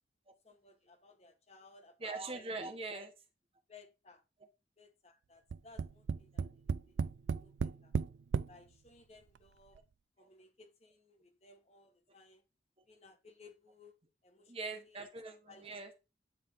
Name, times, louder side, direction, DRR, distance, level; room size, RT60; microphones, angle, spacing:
voice 1, 0.4-2.5 2.9-3.0 3.7-4.2 4.8-7.9 8.5-9.8 10.2-12.4 12.9-15.0 15.5-15.6, left 3 dB, 35° left, 1.3 m, -61 dB
voice 2, 2.0-3.1 10.2-10.3 14.5-15.9, right 3 dB, 30° right, 1.2 m, -42 dB
Tap, 5.5-8.5 9.4-9.5 9.8-9.9, right 5 dB, 85° right, 0.4 m, -34 dB
9.2 x 3.4 x 4.0 m
head